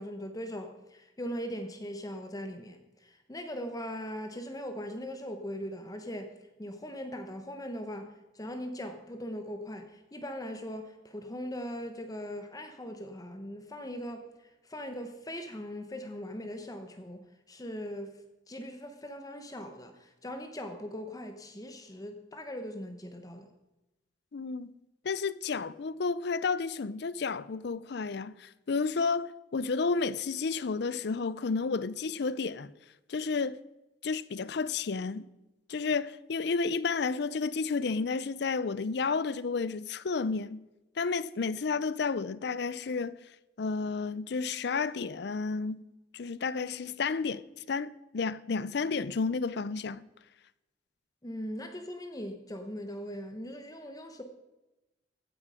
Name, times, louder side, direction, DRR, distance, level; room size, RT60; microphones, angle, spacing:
voice 1, 0.0-6.3 6.6-14.3 14.7-18.1 18.5-23.5 51.2-54.2, equal, 20° left, 1.0 m, -40 dB
voice 2, 24.3-24.7 25.0-32.7 33.1-33.6 34.0-35.3 35.7-40.6 41.0-43.2 43.6-45.8 46.1-50.0, left 4 dB, 65° left, 0.5 m, -31 dB
15.0 x 9.6 x 5.0 m
head